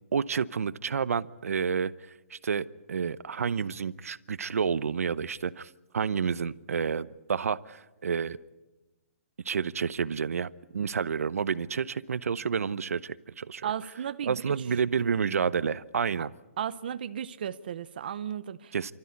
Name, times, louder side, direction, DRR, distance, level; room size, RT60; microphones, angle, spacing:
voice 1, 0.1-1.9 2.3-8.4 9.4-13.7 14.2-16.3 18.7-18.9, right 6 dB, 90° right, 0.9 m, -30 dB
voice 2, 13.6-14.5 16.2-16.3 16.6-18.7, right 9 dB, 40° right, 0.7 m, -35 dB
29.5 x 13.0 x 9.6 m
hypercardioid pair, 175°, 8 cm